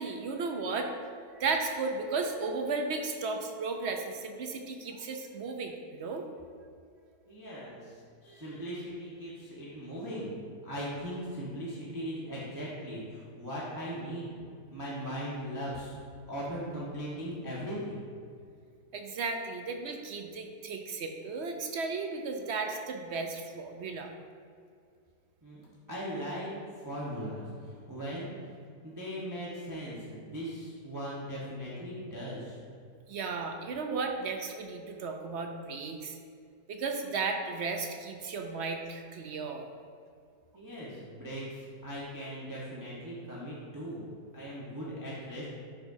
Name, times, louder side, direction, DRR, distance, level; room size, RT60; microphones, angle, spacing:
voice 1, 0.0-6.3 18.9-24.1 33.1-36.2 36.7-39.6, right 4 dB, 65° right, 4 dB, 0.7 m, -34 dB
voice 2, 7.3-14.4 14.7-15.9 16.3-18.0 25.4-25.6 25.9-26.5 26.8-28.3 28.8-32.6 40.5-44.1 44.3-45.5, equal, 15° right, -7 dB, 1.1 m, -39 dB
11.5 x 5.2 x 2.7 m, 2.3 s
omnidirectional pair, 1.7 m